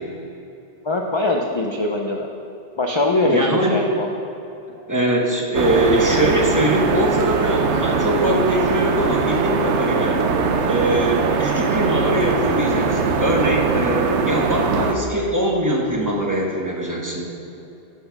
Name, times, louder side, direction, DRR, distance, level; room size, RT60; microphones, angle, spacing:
voice 1, 0.8-2.3 2.8-4.1, left 2 dB, 40° left, 1 dB, 0.4 m, -22 dB
voice 2, 3.2-3.8 4.9-10.2 10.6-17.3, right 1 dB, 20° right, -2 dB, 0.9 m, -22 dB
sound 1, 5.5-14.9, right 5 dB, 80° right, 1.0 m, -21 dB
10.0 x 4.3 x 5.8 m, 2.8 s
omnidirectional pair, 1.2 m